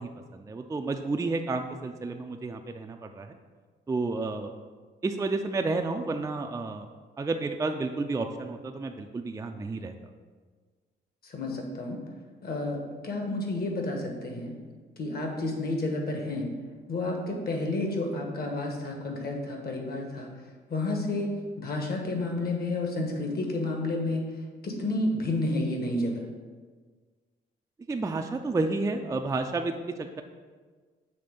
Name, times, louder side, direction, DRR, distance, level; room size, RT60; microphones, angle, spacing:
voice 1, 0.0-3.3 3.9-4.5 5.0-6.9 7.2-9.9 27.9-30.2, right 3 dB, 15° right, 4 dB, 0.4 m, -31 dB
voice 2, 11.2-12.0 12.4-14.5 15.0-16.5 16.9-20.3 20.7-24.2 24.6-26.2, left 2 dB, 50° left, 2 dB, 1.3 m, -30 dB
6.9 x 3.2 x 5.1 m, 1.5 s
cardioid pair, 90°, 20 cm